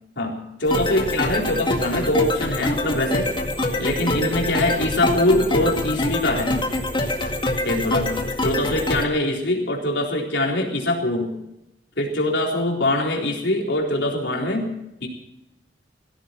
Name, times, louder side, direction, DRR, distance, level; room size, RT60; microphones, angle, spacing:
voice 1, 0.2-3.3 3.8-6.5 7.6-8.2 8.4-11.3 12.0-14.7 15.0-15.1, left 1 dB, 80° left, 0 dB, 3.9 m, -23 dB
sound 1, 0.7-9.0, left 1 dB, 30° left, 1.9 m, -25 dB
19.0 x 15.5 x 4.6 m, 0.89 s
head